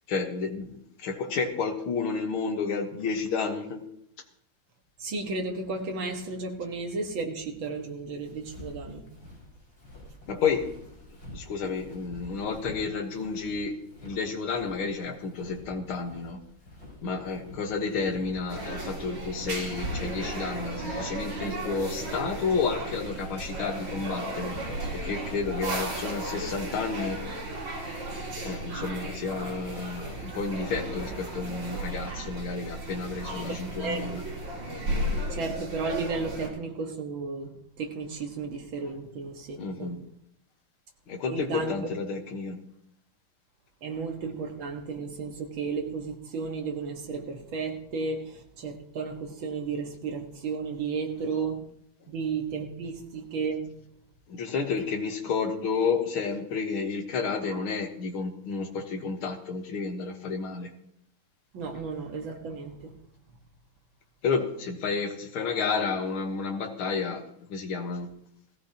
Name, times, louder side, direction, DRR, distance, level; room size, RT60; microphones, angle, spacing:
voice 1, 0.1-3.8 10.3-10.7 11.3-13.8 14.0-16.4 17.0-24.6 24.9-27.2 28.4-34.2 39.6-40.0 41.1-42.6 54.3-60.7 64.2-67.2 67.5-68.1, left 5 dB, 80° left, 5 dB, 2.2 m, -31 dB
voice 2, 5.0-9.0 25.6-26.3 33.2-34.1 35.3-37.5 37.8-39.9 41.3-41.7 43.8-51.6 52.1-53.6 57.5-57.6 61.5-62.9, right 4 dB, 70° right, 2 dB, 2.4 m, -33 dB
Walk footsteps, 8.3-25.6, left 2 dB, 55° left, 6.5 m, -48 dB
sound 1, 18.5-36.5, right 1 dB, 85° right, 3.9 m, -35 dB
17.5 x 16.0 x 2.9 m, 0.72 s
omnidirectional pair, 2.3 m